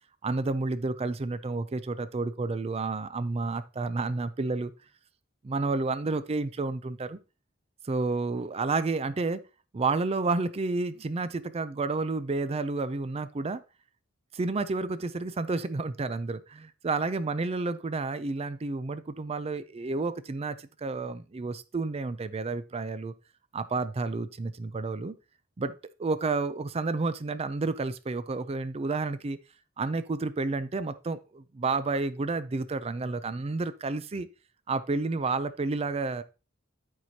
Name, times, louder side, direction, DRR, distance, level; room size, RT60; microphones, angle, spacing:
voice 1, 0.2-4.7 5.4-7.2 7.8-9.4 9.7-13.6 14.3-23.1 23.5-25.1 25.6-25.7 26.0-29.4 29.8-34.3 34.7-36.2, right 3 dB, 30° right, 0.4 m, -30 dB
13.0 x 4.7 x 2.8 m
head